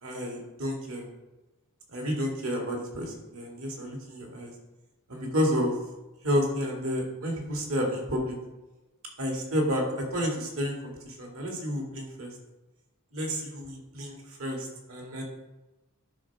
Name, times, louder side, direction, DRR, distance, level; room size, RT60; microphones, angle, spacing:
voice 1, 0.0-1.1 1.9-4.5 5.1-5.8 6.2-8.4 9.2-12.3 13.1-15.3, equal, 75° right, 1 dB, 2.2 m, -30 dB
11.0 x 4.5 x 6.0 m, 1.1 s
head